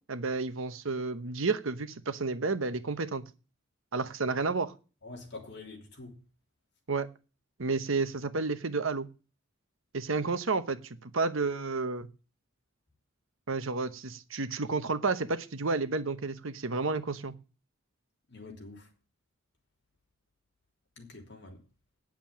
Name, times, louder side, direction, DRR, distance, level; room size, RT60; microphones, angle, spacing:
voice 1, 0.1-3.2 3.9-4.7 6.9-7.1 7.6-9.1 9.9-12.1 13.5-17.3, right 3 dB, 70° right, 1.0 m, -31 dB
voice 2, 5.0-6.2 18.3-18.9 21.0-21.6, left 3 dB, 55° left, 3.2 m, -46 dB
9.4 x 7.5 x 7.5 m
head